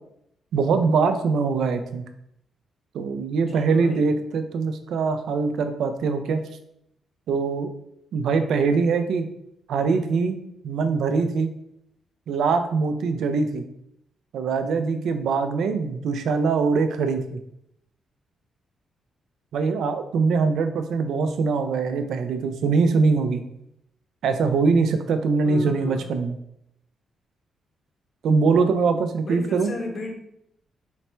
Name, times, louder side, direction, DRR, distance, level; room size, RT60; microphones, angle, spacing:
voice 1, 0.5-2.0 2.9-6.4 7.3-7.7 8.1-9.3 9.7-11.5 12.3-13.7 14.3-17.4 19.5-23.4 24.2-26.4 28.2-29.7, right 4 dB, 75° right, 8 dB, 0.4 m, -23 dB
voice 2, 3.5-4.0 25.4-26.0 29.2-30.1, left 2 dB, 35° left, 2 dB, 0.7 m, -34 dB
4.0 x 2.2 x 4.3 m, 0.78 s
wide cardioid pair, 155°, 0 cm